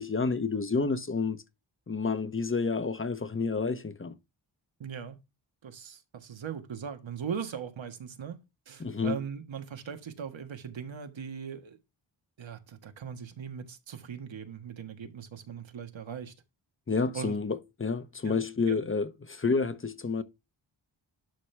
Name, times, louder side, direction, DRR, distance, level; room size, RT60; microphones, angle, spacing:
voice 1, 0.0-1.4 1.9-4.1 8.8-9.2 16.9-20.2, left 4 dB, 25° left, 1.0 m, -29 dB
voice 2, 4.8-5.2 5.6-11.8 12.4-16.3 17.1-17.4 18.2-18.4 18.7-18.8, right 7 dB, 80° right, 1.7 m, -39 dB
11.5 x 5.9 x 3.4 m
wide cardioid pair, 120°, 45 cm